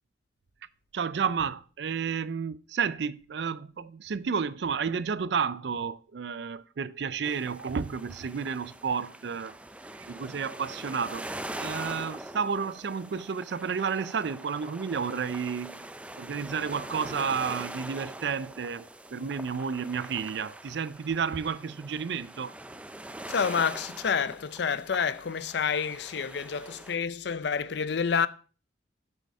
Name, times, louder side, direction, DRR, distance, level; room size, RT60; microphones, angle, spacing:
voice 1, 0.9-9.6 9.9-11.3 11.6-15.8 16.2-22.5, right 6 dB, 65° right, 0.4 m, -31 dB
sound 1, 7.2-27.0, right 1 dB, 5° right, 0.4 m, -43 dB
voice 2, 23.3-28.3, left 6 dB, 65° left, 0.5 m, -28 dB
8.3 x 6.5 x 5.3 m
head